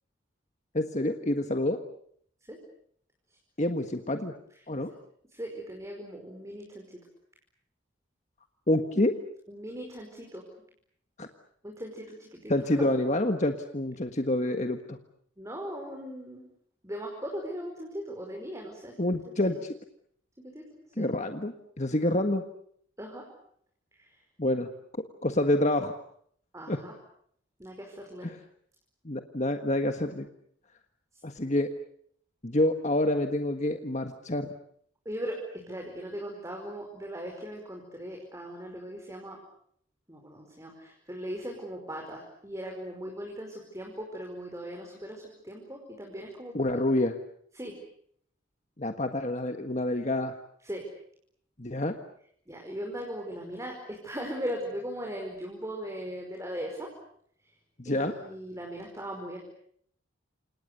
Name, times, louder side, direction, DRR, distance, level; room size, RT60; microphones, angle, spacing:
voice 1, 0.7-1.8 3.6-4.3 4.7-4.9 8.7-9.2 11.2-11.3 12.5-15.0 19.0-19.7 21.0-22.4 24.4-24.7 25.2-26.0 26.7-26.8 28.2-28.4 29.1-30.3 31.2-31.7 32.4-34.5 46.5-47.2 48.8-50.3 51.6-51.9 57.8-58.1, left 1 dB, 35° left, 6 dB, 1.6 m, -27 dB
voice 2, 5.3-6.8 9.5-10.4 11.6-12.5 12.8-12.9 15.4-16.4 16.8-19.2 20.4-20.6 21.0-21.1 23.0-23.2 26.5-26.9 27.6-28.3 35.1-39.4 40.1-46.8 47.6-47.7 50.6-50.8 52.5-56.9 57.9-59.4, equal, 15° right, 1 dB, 5.0 m, -39 dB
29.0 x 27.0 x 6.8 m, 0.66 s
head